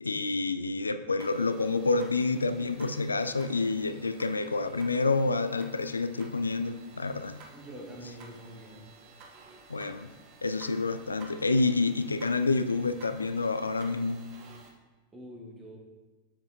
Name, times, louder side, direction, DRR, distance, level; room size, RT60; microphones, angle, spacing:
voice 1, 0.0-7.4 9.7-10.1 10.4-14.2, left 3 dB, 75° left, 11 dB, 0.3 m, -28 dB
sound 1, 1.2-14.7, right 3 dB, 45° right, 1.1 m, -53 dB
voice 2, 7.5-8.9 15.1-15.8, equal, 10° right, -2 dB, 1.6 m, -45 dB
7.2 x 7.1 x 2.8 m, 1.3 s
figure-of-eight pair, 90°, 0 cm